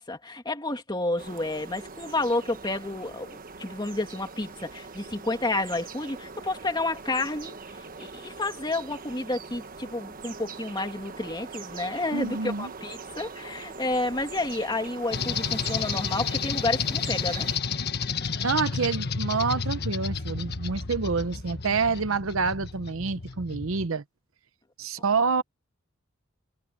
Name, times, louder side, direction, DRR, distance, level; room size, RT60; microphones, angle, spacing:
voice 1, 0.0-7.6 8.0-17.5, left 2 dB, 20° left, 2.1 m, -30 dB
sound 1, 1.2-17.6, right 4 dB, 40° right, 1.3 m, -42 dB
voice 2, 12.1-12.7 18.4-24.0 24.8-25.4, right 4 dB, 70° right, 0.8 m, -27 dB
sound 2, 15.1-23.9, left 5 dB, 50° left, 1.4 m, -31 dB
head